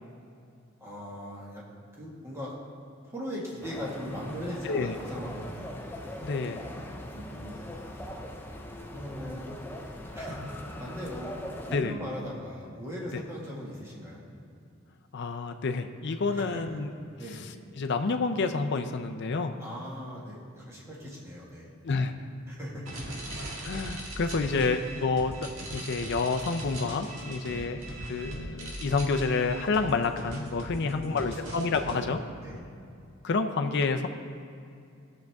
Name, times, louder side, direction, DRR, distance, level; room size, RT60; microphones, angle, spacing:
voice 1, 0.8-1.6 1.9-2.5 3.1-5.8 7.1-7.6 8.9-9.5 10.1-10.4 10.8-11.3 11.6-14.2 16.3-16.6 17.2-17.4 19.6-21.7 22.5-22.8 27.5-27.7 30.7-31.5 31.9-32.1 32.4-32.6, equal, 15° right, -5 dB, 1.8 m, -39 dB
sound 1, 3.6-11.8, left 1 dB, 10° left, 0.6 m, -40 dB
voice 2, 4.6-4.9 6.2-6.6 11.7-11.9 13.1-13.2 15.1-16.9 17.8-19.6 21.8-22.1 23.6-27.8 28.1-32.2 33.2-34.1, left 4 dB, 60° left, 6 dB, 0.5 m, -29 dB
sound 2, 22.9-31.9, right 1 dB, 70° right, 2.0 m, -40 dB
17.0 x 6.4 x 3.5 m, 2.5 s
head